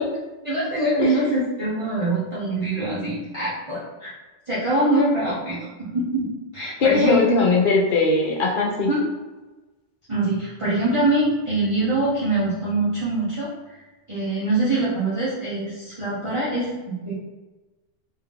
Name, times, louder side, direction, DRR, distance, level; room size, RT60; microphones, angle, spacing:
voice 1, 0.4-4.1 4.5-7.2 8.9-9.0 10.1-13.5 14.1-17.1, right 2 dB, 30° right, -12 dB, 1.0 m, -24 dB
voice 2, 6.8-8.9, left 4 dB, 50° left, -1 dB, 0.8 m, -19 dB
3.4 x 2.7 x 3.7 m, 1.2 s
omnidirectional pair, 1.2 m